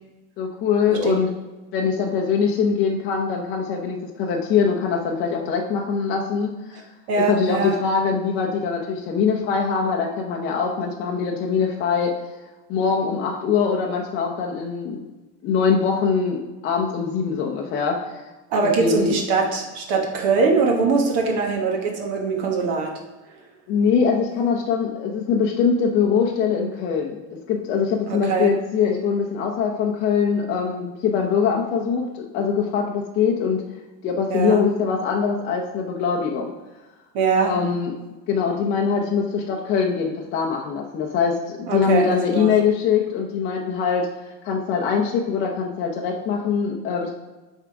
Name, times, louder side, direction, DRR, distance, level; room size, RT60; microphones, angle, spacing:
voice 1, 0.4-1.3 1.7-6.8 7.1-12.1 12.7-15.0 15.4-18.2 18.8-19.2 23.7-27.2 27.5-33.6 34.0-36.5 37.4-37.9 38.3-44.1 44.4-47.1, left 6 dB, 30° left, -1 dB, 0.7 m, -22 dB
voice 2, 7.1-7.8 18.5-22.9 28.1-28.5 34.3-34.6 37.1-37.5 41.7-42.5, right 4 dB, 50° right, 1 dB, 1.4 m, -22 dB
8.8 x 3.7 x 4.7 m, 1.1 s
cardioid pair, 175°, 33 cm